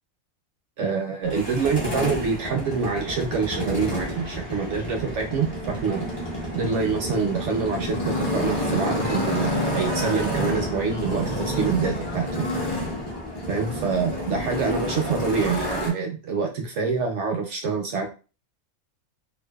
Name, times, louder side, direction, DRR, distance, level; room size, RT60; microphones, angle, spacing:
voice 1, 0.8-6.0 6.5-12.5 13.5-18.1, right 5 dB, 65° right, 3 dB, 0.8 m, -26 dB
Motorcycle, 1.2-15.9, equal, 25° left, 0.6 m, -29 dB
2.6 x 2.2 x 2.2 m, 0.32 s
omnidirectional pair, 1.5 m